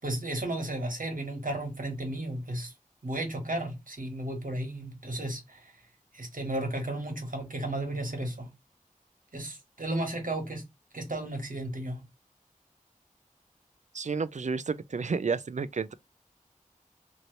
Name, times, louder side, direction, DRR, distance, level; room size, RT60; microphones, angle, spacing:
voice 1, 0.0-2.7 3.0-5.7 6.1-8.5 9.3-10.6 10.9-12.0, right 1 dB, 75° right, 1.2 m, -34 dB
voice 2, 13.9-15.9, right 5 dB, 55° right, 0.4 m, -31 dB
2.9 x 2.6 x 3.1 m
wide cardioid pair, 50°, 14 cm